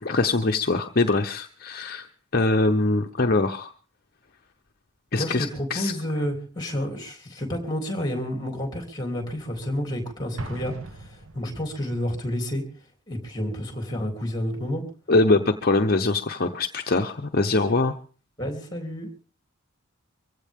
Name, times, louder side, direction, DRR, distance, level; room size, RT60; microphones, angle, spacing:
voice 1, 0.0-2.1 2.3-3.7 5.1-5.9 15.1-17.9, left 2 dB, 45° left, 4 dB, 0.8 m, -23 dB
voice 2, 5.2-12.6 13.1-14.8 18.4-19.1, equal, 20° left, 4 dB, 3.2 m, -30 dB
Explosion, 10.4-12.0, right 2 dB, 70° right, 1.2 m, -39 dB
23.5 x 16.0 x 3.6 m, 0.39 s
head